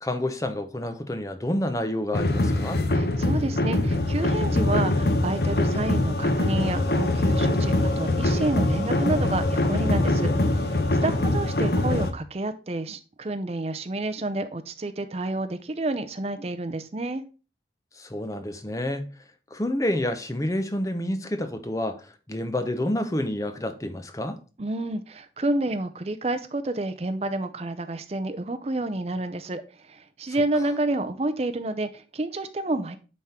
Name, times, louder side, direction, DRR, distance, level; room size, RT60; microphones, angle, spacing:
voice 1, 0.0-2.8 11.0-11.3 18.0-19.1 19.5-22.0 22.3-24.4, left 1 dB, 20° left, 0.7 m, -28 dB
sound 1, 2.1-12.1, left 1 dB, 65° left, 0.9 m, -23 dB
voice 2, 2.9-17.2 24.6-33.0, right 2 dB, 35° right, 0.5 m, -29 dB
9.2 x 3.7 x 4.2 m
head